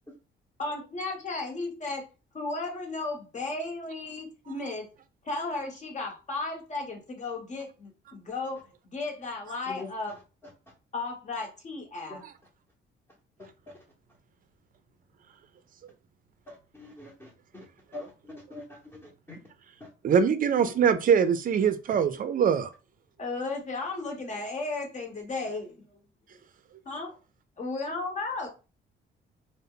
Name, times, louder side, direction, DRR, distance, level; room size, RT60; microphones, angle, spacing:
voice 1, 0.6-2.1 2.3-4.9 5.2-10.2 10.9-12.2 23.2-26.0 26.8-27.1 27.6-28.5, left 3 dB, 35° left, 1.0 m, -34 dB
voice 2, 16.5-17.6 17.9-18.6 18.9-19.0 19.3-19.4, left 2 dB, 15° left, 0.8 m, -43 dB
voice 3, 20.0-22.7, right 7 dB, 45° right, 0.4 m, -23 dB
2.1 x 2.0 x 3.7 m
cardioid pair, 90°, 20 cm